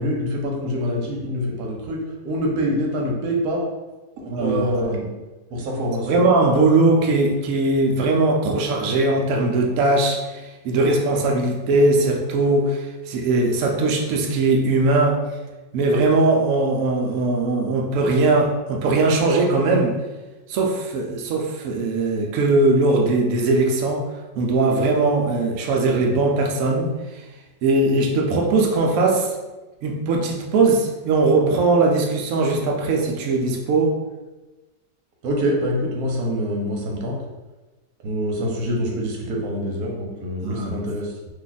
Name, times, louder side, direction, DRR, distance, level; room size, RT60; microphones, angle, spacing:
voice 1, 0.0-3.6 4.2-5.0 5.5-6.3 35.2-37.2 38.0-41.2, equal, 65° right, -1 dB, 1.1 m, -25 dB
voice 2, 4.3-5.1 6.1-15.2 15.7-20.0 20.5-24.0 24.4-27.2 27.6-29.4 29.8-34.0 40.4-40.8, right 2 dB, 80° right, 0 dB, 0.7 m, -20 dB
2.9 x 2.3 x 3.9 m, 1.1 s
omnidirectional pair, 1.9 m